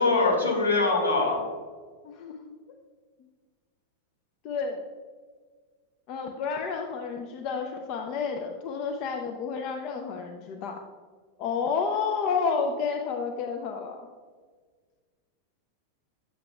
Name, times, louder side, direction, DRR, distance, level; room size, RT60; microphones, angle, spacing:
voice 1, 0.0-1.4, left 3 dB, 75° left, -1 dB, 1.9 m, -23 dB
voice 2, 2.0-2.6 4.4-4.8 6.1-10.8 11.4-14.1, left 5 dB, 40° left, 3 dB, 0.6 m, -30 dB
9.4 x 7.6 x 2.3 m, 1.5 s
figure-of-eight pair, 90°, 0 cm